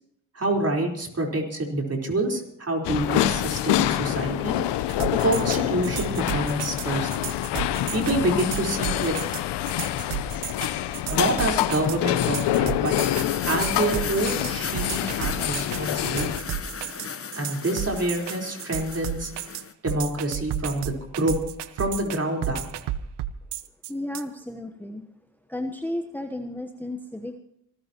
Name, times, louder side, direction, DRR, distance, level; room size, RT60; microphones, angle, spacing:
voice 1, 0.3-4.6 5.1-7.2 7.9-9.2 11.1-12.9 13.4-16.3 17.4-19.3 19.8-21.3 21.8-22.6, right 1 dB, 35° right, 1 dB, 4.4 m, -27 dB
sound 1, 2.8-16.4, left 13 dB, 70° left, 0.9 m, -26 dB
sound 2, 4.9-24.2, right 12 dB, 70° right, 0.9 m, -33 dB
sound 3, 13.0-19.7, left 6 dB, 30° left, 1.1 m, -35 dB
voice 2, 23.9-25.1 25.5-27.4, left 1 dB, 5° left, 5 dB, 1.1 m, -33 dB
26.0 x 14.0 x 3.0 m, 0.74 s
hypercardioid pair, 45°, 42 cm